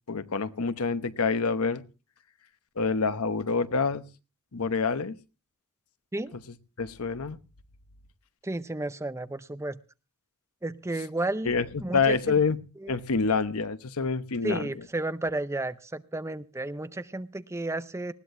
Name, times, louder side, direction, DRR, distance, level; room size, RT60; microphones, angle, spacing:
voice 1, 0.1-1.8 2.8-4.0 4.5-5.2 6.3-6.4 6.8-7.4 11.4-12.6 12.9-14.9, left 4 dB, 80° left, 12 dB, 1.0 m, -27 dB
voice 2, 8.4-9.8 10.6-11.5 11.8-12.2 12.8-12.9 14.4-18.1, right 2 dB, 15° right, 12 dB, 0.6 m, -32 dB
19.5 x 16.5 x 2.6 m, 0.33 s
head